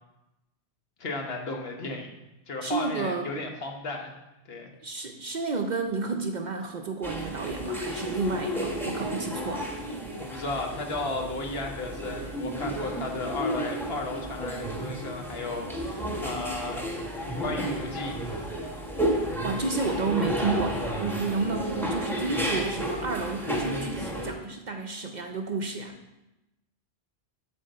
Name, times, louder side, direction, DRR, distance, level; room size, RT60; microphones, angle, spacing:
voice 1, 1.0-2.1 2.5-4.1 4.5-4.7 10.1-16.9 17.4-18.4, left 2 dB, 65° left, 2 dB, 1.3 m, -34 dB
voice 2, 2.6-3.3 4.8-9.7 19.4-25.9, right 4 dB, 50° right, 4 dB, 0.6 m, -31 dB
sound 1, 7.0-24.3, equal, ahead, 0.9 m, -32 dB
7.9 x 4.1 x 6.6 m, 0.97 s
omnidirectional pair, 1.1 m